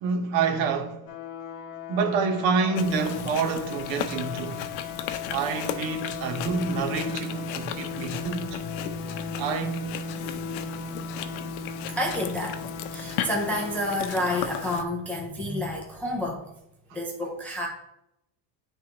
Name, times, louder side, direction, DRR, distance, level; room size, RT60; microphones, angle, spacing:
voice 1, 0.0-1.1 1.9-4.6 5.3-8.6 9.4-10.0, right 5 dB, 65° right, 1.1 m, -27 dB
sound 1, 1.1-14.8, left 4 dB, 40° left, 0.8 m, -37 dB
Chewing mastication, 2.7-14.8, left 10 dB, 85° left, 0.7 m, -36 dB
voice 2, 12.0-12.6 12.9-16.5 16.9-17.7, left 1 dB, 5° left, 0.3 m, -29 dB
10.0 x 3.5 x 2.9 m
cardioid pair, 160°, 49 cm